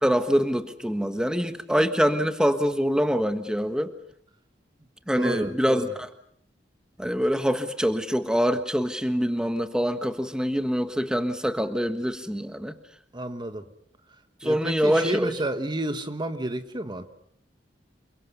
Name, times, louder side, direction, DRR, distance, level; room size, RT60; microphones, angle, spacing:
voice 1, 0.0-3.9 5.1-6.1 7.0-12.7 14.4-15.3, equal, 5° right, 8 dB, 1.5 m, -25 dB
voice 2, 5.1-5.9 13.1-13.6 14.4-17.1, right 1 dB, 25° right, 9 dB, 1.4 m, -31 dB
28.0 x 23.5 x 6.9 m, 0.66 s
head